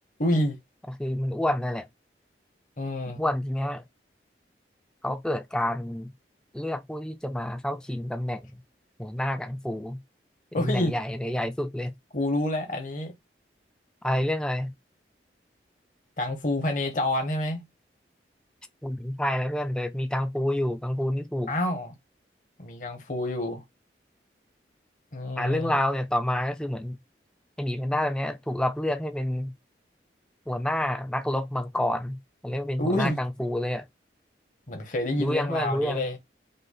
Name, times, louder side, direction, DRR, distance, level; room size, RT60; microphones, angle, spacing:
voice 1, 0.2-0.6 2.8-3.2 10.5-10.9 12.1-13.1 16.2-17.6 21.5-21.9 22.6-23.6 25.1-25.8 32.8-33.2 34.7-36.2, left 1 dB, 45° left, 0.9 m, -28 dB
voice 2, 0.9-1.9 3.2-3.8 5.0-6.1 6.5-8.6 9.0-10.0 10.5-11.9 14.0-14.7 18.8-21.5 25.4-27.0 27.6-29.5 30.5-33.9 35.2-36.0, left 1 dB, 5° left, 0.4 m, -28 dB
5.3 x 2.0 x 4.0 m
head